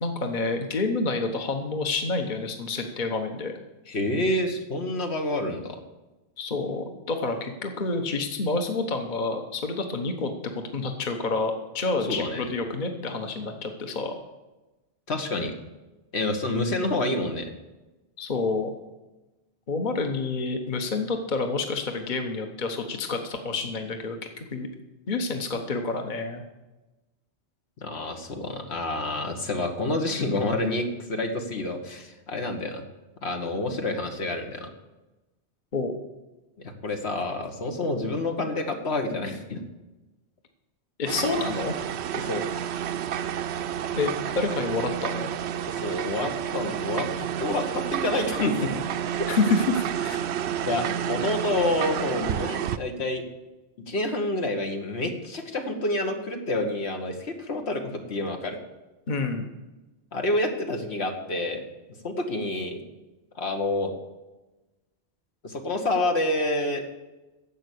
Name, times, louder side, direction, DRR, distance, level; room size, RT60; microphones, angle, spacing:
voice 1, 0.0-3.5 6.4-10.3 10.7-14.1 18.2-18.7 19.7-24.7 25.1-26.4 35.7-36.0 41.0-41.8 44.0-45.3 49.3-50.2 59.1-59.4, left 3 dB, 45° left, 4 dB, 1.2 m, -28 dB
voice 2, 3.9-5.8 12.0-12.4 15.1-15.5 16.1-17.5 27.8-32.8 33.2-34.7 36.6-39.6 42.1-42.5 45.7-48.8 50.7-53.2 53.9-58.6 60.1-61.6 62.0-62.8 63.4-63.9 65.4-66.8, left 2 dB, 75° left, 4 dB, 1.7 m, -28 dB
sound 1, 41.1-52.8, right 9 dB, 80° right, 0.9 m, -30 dB
11.0 x 7.7 x 8.4 m, 1.1 s
omnidirectional pair, 1.1 m